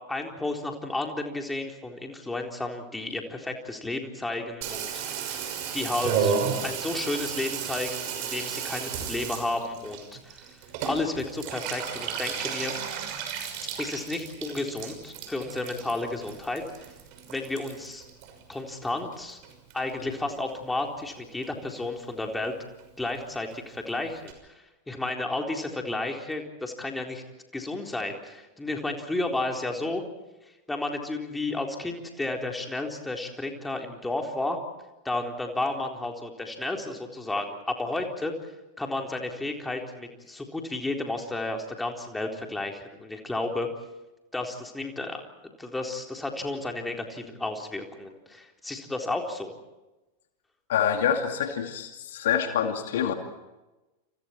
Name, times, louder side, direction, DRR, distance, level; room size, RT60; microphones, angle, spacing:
voice 1, 0.1-5.4 5.7-6.3 6.6-10.5 10.8-12.8 13.8-16.6 17.3-18.0 18.5-19.4 19.7-22.5 23.0-24.3 24.9-27.2 27.5-30.0 30.7-34.6 35.0-38.3 38.8-43.7 44.3-45.2 45.6-49.5, left 2 dB, 5° left, 2 dB, 4.0 m, -32 dB
Water tap faucet / Bathtub (filling or washing), 4.6-19.2 19.4-20.2 20.5-20.6 20.8-20.9 21.1-21.5 21.8-21.9 22.1-22.2 22.4-22.5 22.8-22.9 23.1-23.2 23.5-23.6 23.9-24.0 24.3-24.4, right 7 dB, 45° right, 6.1 m, -33 dB
voice 2, 50.7-53.1, left 8 dB, 60° left, 5 dB, 2.5 m, -26 dB
29.5 x 29.0 x 4.5 m, 1.1 s
figure-of-eight pair, 90°, 0 cm